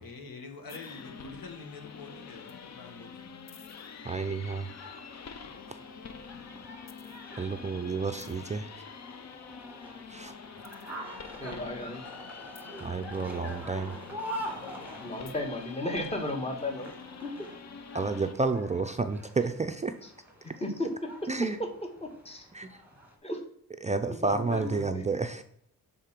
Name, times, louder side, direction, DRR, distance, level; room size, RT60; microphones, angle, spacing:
voice 1, 0.0-3.3 13.3-15.2, left 3 dB, 85° left, 5 dB, 1.4 m, -47 dB
sound 1, 0.7-18.3, left 6 dB, 50° left, 0.6 m, -46 dB
sound 2, 3.9-23.1, equal, 5° right, 1.7 m, -45 dB
voice 2, 4.0-4.7 5.7-5.8 7.4-8.7 10.1-10.3 12.8-14.0 17.9-19.9 21.3-21.6 22.5-22.8 23.8-25.4, right 3 dB, 20° right, 7 dB, 0.4 m, -30 dB
voice 3, 11.1-12.1 15.0-16.9 17.2-17.3 20.6-20.9 21.6-21.7 22.0-22.4 23.2-23.4 24.1-25.1, left 1 dB, 20° left, 4 dB, 1.2 m, -35 dB
6.5 x 3.6 x 5.8 m, 0.67 s
wide cardioid pair, 105°, 34 cm